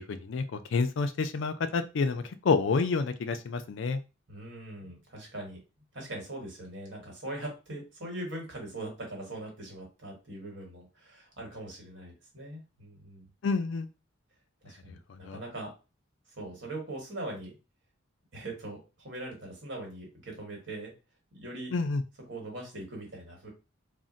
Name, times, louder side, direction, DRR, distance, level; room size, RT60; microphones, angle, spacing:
voice 1, 0.0-4.0 13.4-13.9 14.9-15.4 21.7-22.0, left 4 dB, 65° left, 10 dB, 0.4 m, -29 dB
voice 2, 4.3-5.6 5.9-13.3 14.6-15.7 16.4-17.5 18.3-20.9 21.3-21.7 22.3-23.5, right 1 dB, 60° right, 0 dB, 1.3 m, -41 dB
2.5 x 2.1 x 3.8 m, 0.29 s
head